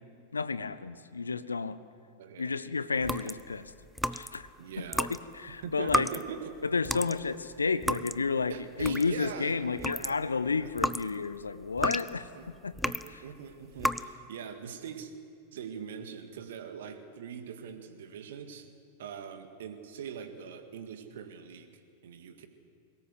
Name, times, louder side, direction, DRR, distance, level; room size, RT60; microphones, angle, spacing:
voice 1, 0.3-1.8 2.4-3.7 4.1-4.5 4.8-5.1 5.3-6.1 6.6-12.3 12.6-13.2, left 4 dB, 75° left, 15 dB, 0.8 m, -31 dB
voice 2, 2.2-2.5 4.6-5.1 5.6-6.6 8.5-9.6 10.0-10.2 10.6-10.7 11.4-11.8 12.3-12.5 13.0-15.1 15.5-18.7 19.0-21.7 22.0-22.5, right 7 dB, 60° right, 8 dB, 2.0 m, -42 dB
sound 1, 3.0-4.5 4.9-9.3 9.7-13.2 13.7-14.1, equal, ahead, 0.6 m, -33 dB
22.0 x 19.0 x 8.1 m, 2.3 s
figure-of-eight pair, 90°, 0 cm